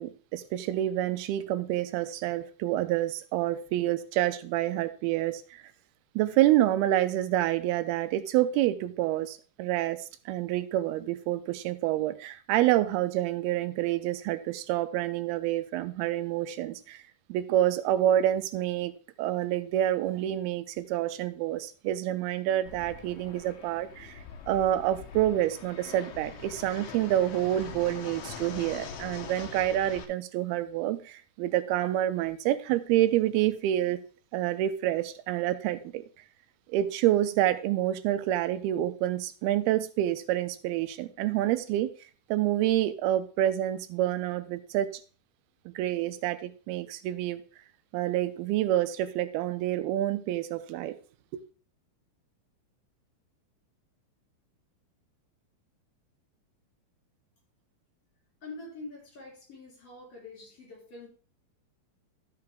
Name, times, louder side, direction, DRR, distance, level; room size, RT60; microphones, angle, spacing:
voice 1, 0.0-5.6 6.2-17.0 17.3-18.9 19.2-34.0 34.3-36.0 36.7-41.9 42.3-44.9 45.8-47.4 47.9-51.0 51.3-51.4, right 13 dB, 90° right, 2.6 m, -28 dB
Fixed-wing aircraft airplane, 22.7-30.0, left 7 dB, 85° left, 1.5 m, -43 dB
voice 2, 58.4-61.1, left 2 dB, 40° left, 4.3 m, -45 dB
12.5 x 5.9 x 3.4 m
omnidirectional pair, 4.4 m